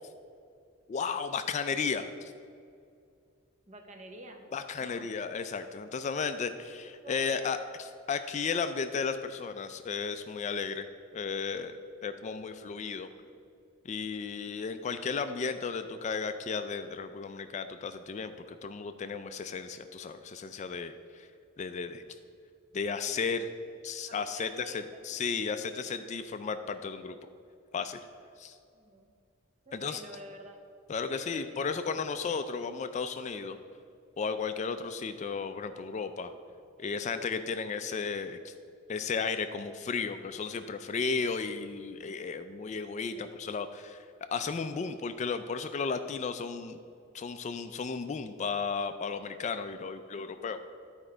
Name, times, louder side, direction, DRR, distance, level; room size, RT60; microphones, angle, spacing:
voice 1, 0.9-2.3 4.5-10.9 11.1-13.1 13.8-21.3 21.6-22.0 22.7-23.5 23.8-27.1 27.7-28.0 28.4-28.6 29.7-30.0 30.9-33.6 34.2-36.3 36.8-38.5 38.9-44.0 44.3-46.8 47.1-50.6, left 5 dB, 35° left, 9 dB, 0.3 m, -34 dB
voice 2, 3.7-4.5 4.8-5.1 7.0-7.6 24.1-25.2 28.7-29.1 29.7-30.6 31.1-31.6 42.9-43.3, right 1 dB, 35° right, 4 dB, 0.9 m, -49 dB
10.5 x 4.4 x 5.0 m, 2.4 s
head